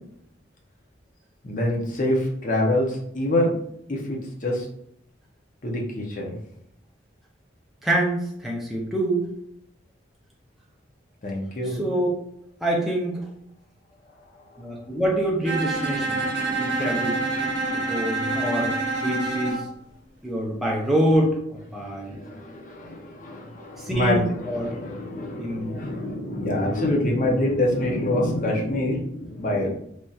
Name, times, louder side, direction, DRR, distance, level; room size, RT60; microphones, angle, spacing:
voice 1, 1.4-3.5 3.9-4.7 5.6-6.4 11.2-11.9 22.1-29.7, left 1 dB, 40° left, -1 dB, 0.6 m, -26 dB
voice 2, 7.8-9.3 11.6-12.1 12.6-13.2 14.6-16.2 16.5-17.2 17.7-18.7 19.0-19.6 20.2-22.2 23.8-24.8 25.4-25.7 29.6-29.7, right 1 dB, ahead, -3 dB, 0.5 m, -25 dB
Bowed string instrument, 15.5-19.7, right 2 dB, 65° right, 0.9 m, -27 dB
3.1 x 2.7 x 2.3 m, 0.73 s
head